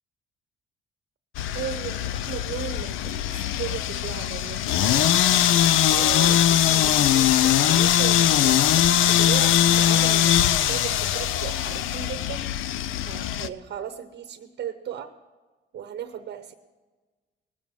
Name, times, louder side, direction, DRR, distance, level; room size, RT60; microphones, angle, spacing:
sound 1, 1.3-13.5, left 11 dB, 85° left, 0.5 m, -21 dB
voice 1, 1.5-5.1 5.9-12.5 13.0-15.1 15.7-16.5, right 9 dB, 60° right, 8 dB, 0.8 m, -36 dB
19.0 x 6.9 x 6.1 m, 1.3 s
cardioid pair, 90°, 20 cm